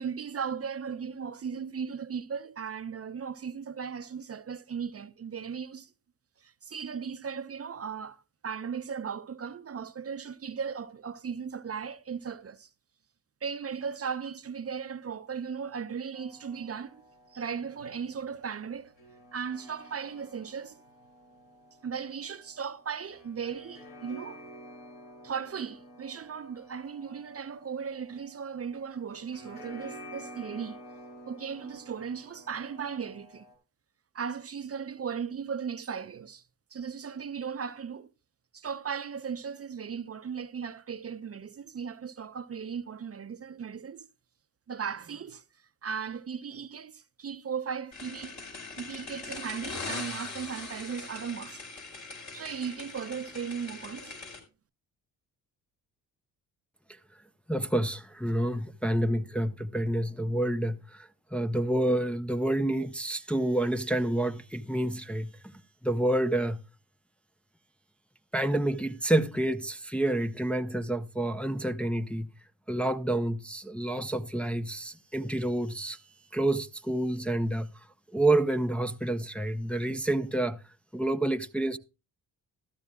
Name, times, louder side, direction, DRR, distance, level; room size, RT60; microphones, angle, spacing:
voice 1, 0.0-5.9 6.4-12.7 13.4-17.0 17.3-18.9 19.3-20.8 21.8-24.4 25.2-30.8 31.3-33.4 34.1-36.4 36.7-38.1 38.5-44.1 44.7-45.4 45.8-48.4 48.8-51.6 52.3-54.2, right 6 dB, 35° right, 0.7 m, -37 dB
sound 1, 16.1-33.5, equal, 65° left, 5.3 m, -50 dB
sound 2, 47.9-54.4, left 4 dB, 45° left, 4.7 m, -41 dB
voice 2, 57.5-65.3 65.8-66.6 68.3-72.3 72.7-76.0 76.3-77.7 78.1-80.6 80.9-81.8, right 1 dB, 5° left, 0.7 m, -28 dB
13.5 x 12.0 x 2.3 m
supercardioid pair, 65°, 39 cm